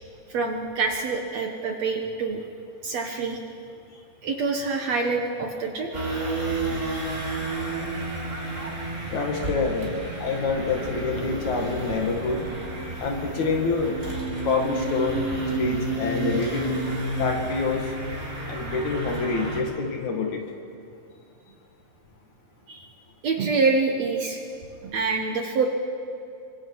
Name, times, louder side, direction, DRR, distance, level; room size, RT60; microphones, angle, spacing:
voice 1, 0.3-2.4 2.8-3.4 4.2-5.9 22.7-22.9 23.2-24.4 24.8-25.7, right 4 dB, 60° right, 2 dB, 2.1 m, -26 dB
sound 1, 5.9-19.6, right 2 dB, 25° right, 3.9 m, -31 dB
voice 2, 9.1-9.9 10.2-12.5 13.0-13.9 14.4-15.3 15.5-16.8 17.2-17.9 18.5-20.4, left 4 dB, 60° left, 2 dB, 3.2 m, -26 dB
26.5 x 24.5 x 4.8 m, 2.6 s
omnidirectional pair, 4.1 m